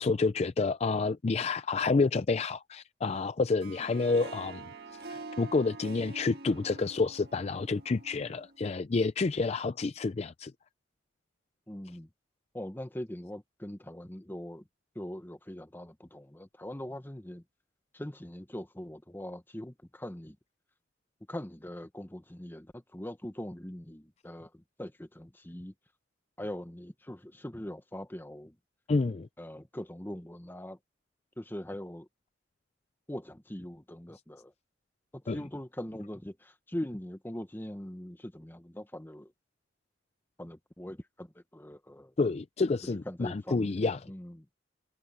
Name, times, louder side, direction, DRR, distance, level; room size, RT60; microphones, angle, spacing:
voice 1, 0.0-4.7 5.1-10.5 28.9-29.3 35.3-35.4 42.2-44.1, left 3 dB, 35° left, 0.4 m, -29 dB
Harp, 3.4-8.6, right 3 dB, 60° right, 1.6 m, -46 dB
voice 2, 11.7-12.1 12.5-14.6 14.9-17.4 17.9-20.4 21.3-25.7 26.4-28.6 29.4-30.8 31.4-32.1 33.1-34.5 35.1-39.3 40.4-42.1 43.0-44.5, left 1 dB, 10° left, 1.1 m, -42 dB
head